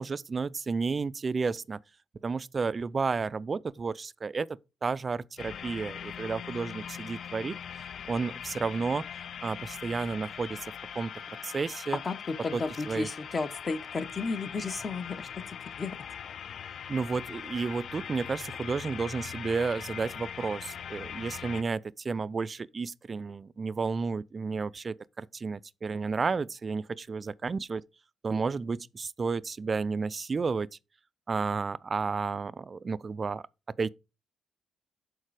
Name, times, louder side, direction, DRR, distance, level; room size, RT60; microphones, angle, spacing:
voice 1, 0.0-1.8 2.2-7.6 8.1-9.1 9.4-10.7 10.9-11.1 11.4-12.0 12.5-13.1 16.9-27.8 28.2-30.7 31.3-33.4 33.8-33.9, right 4 dB, 35° right, 0.3 m, -32 dB
sound 1, 5.4-21.6, left 8 dB, 60° left, 0.3 m, -41 dB
voice 2, 12.0-16.0, left 4 dB, 35° left, 0.8 m, -34 dB
6.5 x 4.1 x 4.7 m
cardioid pair, 90°, 0 cm